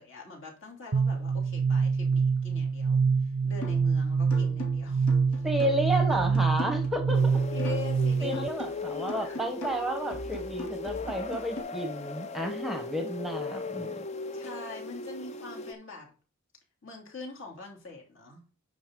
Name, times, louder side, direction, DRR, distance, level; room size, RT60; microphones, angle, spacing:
voice 1, 0.0-5.4 7.5-8.5 8.9-9.4 14.3-16.1 16.8-18.4, left 4 dB, 60° left, -1 dB, 2.9 m, -43 dB
sound 1, 0.9-8.5, right 5 dB, 55° right, 0.5 m, -26 dB
sound 2, 3.6-3.9 4.3-8.0 8.3-11.6, left 2 dB, 75° left, 2.4 m, -41 dB
voice 2, 5.4-7.4 8.2-13.9, right 1 dB, ahead, 5 dB, 0.9 m, -31 dB
sound 3, 7.1-15.7, left 3 dB, 30° left, 0.5 m, -38 dB
9.3 x 5.5 x 3.7 m, 0.37 s
head